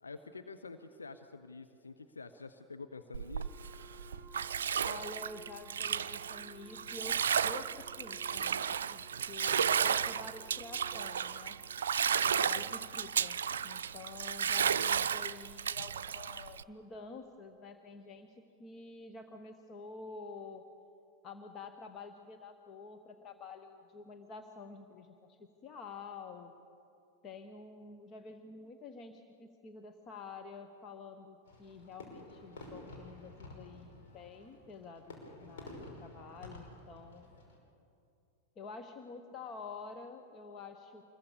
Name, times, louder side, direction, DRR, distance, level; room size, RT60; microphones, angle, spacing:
voice 1, 0.0-3.5, left 4 dB, 75° left, 8 dB, 0.9 m, -48 dB
Bathtub (filling or washing), 3.1-16.6, right 7 dB, 65° right, 0.5 m, -33 dB
Wind instrument woodwind instrument, 3.4-12.2, right 2 dB, ahead, 2.8 m, -59 dB
voice 2, 4.8-9.0 9.3-11.6 12.3-13.4 13.6-20.6 21.2-26.5 27.2-37.4 38.6-41.0, left 4 dB, 30° left, 6 dB, 1.2 m, -49 dB
Fireworks, 31.4-37.6, left 2 dB, 60° left, 5.7 m, -51 dB
26.0 x 21.5 x 7.0 m, 2.7 s
figure-of-eight pair, 90°, 0 cm